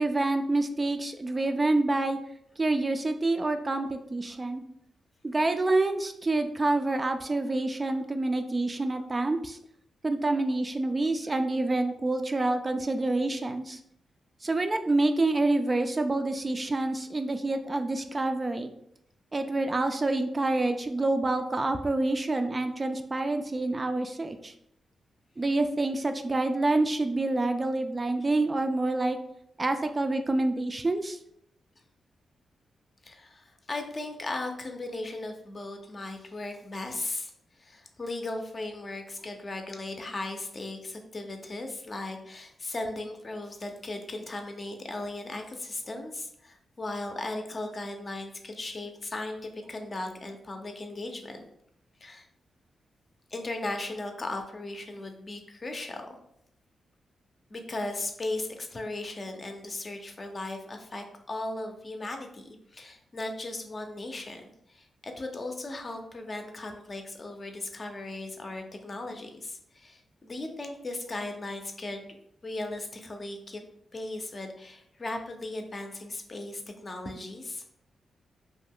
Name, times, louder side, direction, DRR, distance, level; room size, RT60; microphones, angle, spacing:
voice 1, 0.0-2.2 2.6-4.6 5.2-9.6 10.0-13.8 14.4-18.7 19.3-24.5 25.4-29.2 29.6-31.2, right 2 dB, 30° right, 7 dB, 0.3 m, -27 dB
voice 2, 33.0-37.3 37.6-51.5 52.0-52.3 53.3-56.2 57.5-72.1 72.4-73.6 73.9-77.6, left 2 dB, 45° left, 4 dB, 0.5 m, -37 dB
2.4 x 2.2 x 3.5 m, 0.73 s
supercardioid pair, 50°, 0 cm